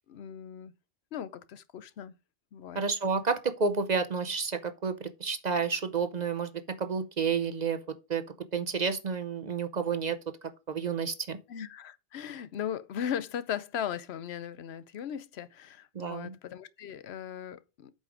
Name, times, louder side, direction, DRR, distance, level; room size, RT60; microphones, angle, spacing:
voice 1, 0.1-0.7 1.1-2.2 2.5-2.8 11.5-17.9, left 9 dB, 85° left, 1.0 m, -38 dB
voice 2, 2.7-6.5 6.8-7.8 8.1-8.2 8.5-11.4 15.9-16.3, right 5 dB, 45° right, 0.8 m, -30 dB
8.4 x 5.3 x 5.0 m
omnidirectional pair, 1.1 m